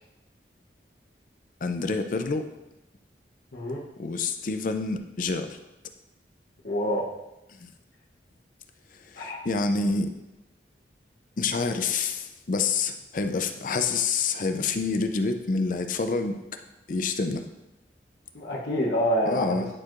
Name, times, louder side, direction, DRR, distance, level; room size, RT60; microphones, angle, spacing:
voice 1, 1.6-2.5 4.0-5.6 7.6-7.7 9.1-10.1 11.4-16.4 16.9-17.4 19.3-19.7, left 4 dB, 50° left, 7 dB, 0.4 m, -27 dB
voice 2, 6.6-7.1 9.2-9.4 18.3-19.7, equal, 75° left, -4 dB, 0.9 m, -27 dB
9.8 x 4.5 x 2.5 m, 0.95 s
head